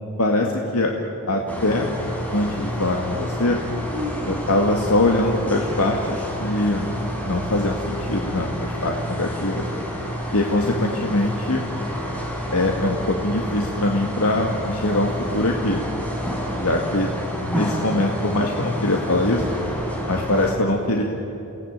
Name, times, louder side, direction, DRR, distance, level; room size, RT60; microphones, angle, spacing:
voice 1, 0.2-0.9 1.3-1.9 2.3-3.6 4.2-6.9 7.2-9.7 10.3-11.7 12.5-15.8 16.6-17.1 17.4-19.4 20.1-21.0, left 2 dB, 85° left, 1 dB, 2.1 m, -22 dB
sound 1, 1.5-20.5, equal, 5° left, 4.3 m, -29 dB
29.0 x 18.0 x 8.9 m, 3.0 s
head